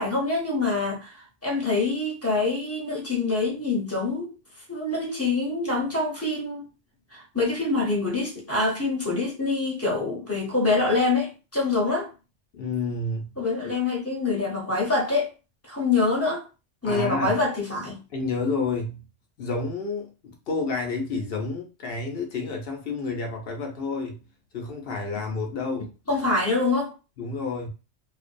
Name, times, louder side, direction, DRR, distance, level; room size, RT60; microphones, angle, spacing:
voice 1, 0.0-4.3 4.7-6.7 7.1-12.1 13.4-15.3 15.6-16.4 16.8-18.0 26.1-26.9, left 3 dB, 15° left, 0.7 m, -25 dB
voice 2, 12.5-13.4 16.8-17.4 18.1-19.1 19.4-24.2 24.5-25.9 27.2-27.7, left 3 dB, 60° left, 0.7 m, -30 dB
2.5 x 2.2 x 2.5 m
omnidirectional pair, 1.2 m